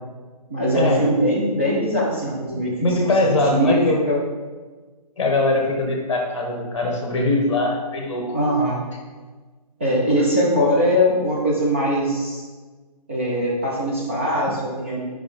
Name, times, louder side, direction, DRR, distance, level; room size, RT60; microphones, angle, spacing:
voice 1, 0.5-2.7 3.5-4.2 8.3-8.8 9.8-12.4 13.1-15.0, equal, 20° right, -5 dB, 0.7 m, -21 dB
voice 2, 2.5-4.0 5.2-8.4, left 2 dB, 45° left, 2 dB, 1.2 m, -22 dB
5.1 x 4.9 x 4.3 m, 1.4 s
hypercardioid pair, 180°, 21 cm